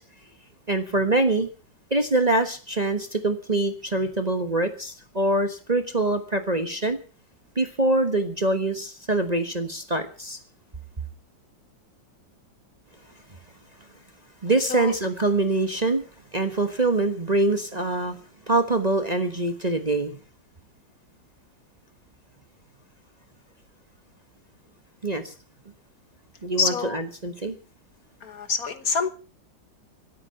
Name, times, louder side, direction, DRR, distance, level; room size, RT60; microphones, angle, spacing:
voice 1, 0.7-1.5 1.9-7.0 7.5-10.4 14.4-16.0 16.3-18.2 18.5-20.2 25.0-25.3 26.4-27.6, right 2 dB, 25° right, 7 dB, 1.2 m, -24 dB
voice 2, 26.6-27.0 28.2-29.1, left 5 dB, 55° left, 11 dB, 1.4 m, -26 dB
25.5 x 8.7 x 5.6 m, 0.37 s
omnidirectional pair, 2.0 m